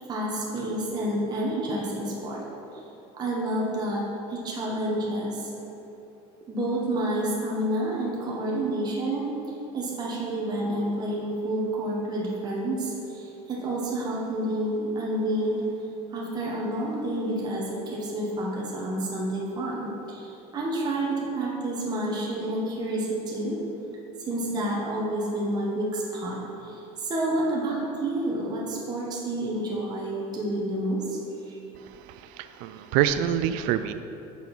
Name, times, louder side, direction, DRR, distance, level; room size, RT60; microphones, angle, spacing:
voice 1, 0.1-2.4 3.2-4.0 4.3-5.3 6.5-9.3 9.7-12.9 13.5-15.6 16.1-17.7 17.9-20.2 20.5-23.6 24.3-26.4 27.1-31.2, right 1 dB, 25° right, -4 dB, 1.1 m, -29 dB
voice 2, 31.8-33.9, right 10 dB, 65° right, 11 dB, 0.4 m, -27 dB
6.1 x 4.4 x 5.4 m, 2.9 s
cardioid pair, 135°, 15 cm